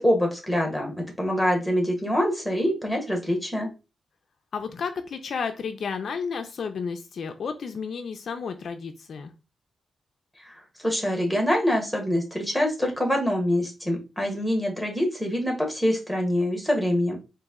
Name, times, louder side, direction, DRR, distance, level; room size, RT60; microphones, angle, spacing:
voice 1, 0.0-3.7 10.5-10.6 10.8-17.2, equal, ahead, 1 dB, 1.0 m, -25 dB
voice 2, 4.5-9.3, left 5 dB, 55° left, 7 dB, 0.4 m, -32 dB
4.0 x 2.6 x 3.6 m, 0.30 s
wide cardioid pair, 170°, 0 cm